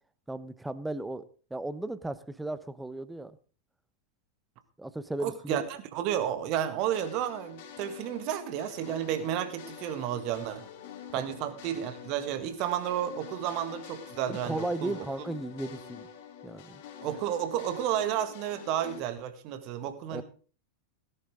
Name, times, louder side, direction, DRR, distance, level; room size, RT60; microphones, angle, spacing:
voice 1, 0.3-3.4 4.8-5.6 14.3-16.1 16.4-16.8 20.1-20.2, right 2 dB, 5° right, 15 dB, 0.9 m, -35 dB
voice 2, 5.2-10.7 11.1-15.1 17.0-20.2, right 10 dB, 40° right, 9 dB, 1.9 m, -32 dB
sound 1, 6.9-19.0, left 8 dB, 50° left, 2.2 m, -46 dB
17.5 x 11.0 x 3.8 m, 0.41 s
figure-of-eight pair, 90°, 0 cm